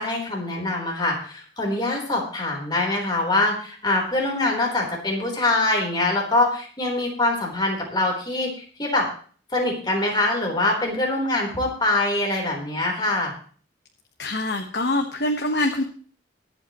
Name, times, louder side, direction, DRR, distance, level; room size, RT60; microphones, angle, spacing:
voice 1, 0.0-8.5 8.8-9.1 9.5-13.3, left 2 dB, 25° left, -1 dB, 3.9 m, -24 dB
voice 2, 14.2-15.8, left 1 dB, 60° left, 3 dB, 1.3 m, -24 dB
23.5 x 8.1 x 3.1 m, 0.43 s
head